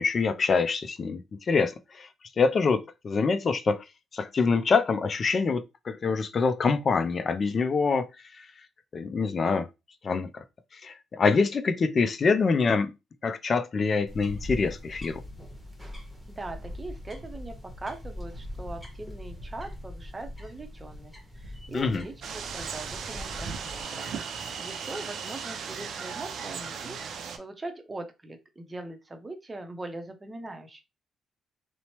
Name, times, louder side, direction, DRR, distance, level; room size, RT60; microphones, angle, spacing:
voice 1, 0.0-2.1 2.4-3.8 4.1-8.1 8.4-8.5 8.9-9.7 10.0-10.4 10.7-12.9 13.2-15.2 21.7-22.0, left 4 dB, 45° left, 0.3 m, -25 dB
sound 1, 14.1-23.8, left 1 dB, 5° right, 1.0 m, -41 dB
voice 2, 16.3-24.2 24.6-30.8, right 2 dB, 25° right, 0.6 m, -41 dB
sound 2, 22.2-27.4, right 6 dB, 65° right, 0.4 m, -36 dB
2.9 x 2.0 x 2.9 m
cardioid pair, 90°, 0 cm